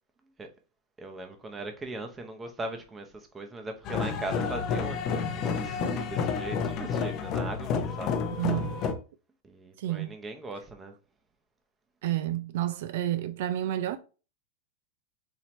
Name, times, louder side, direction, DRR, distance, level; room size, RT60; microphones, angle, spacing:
voice 1, 1.0-8.1 9.4-10.9, right 2 dB, 15° right, 0.7 m, -39 dB
sound 1, 3.8-8.9, left 6 dB, 40° left, 0.6 m, -30 dB
voice 2, 8.4-8.9 9.8-10.2 12.0-14.0, right 13 dB, 70° right, 0.3 m, -30 dB
4.3 x 2.8 x 3.1 m
supercardioid pair, 130°, 0 cm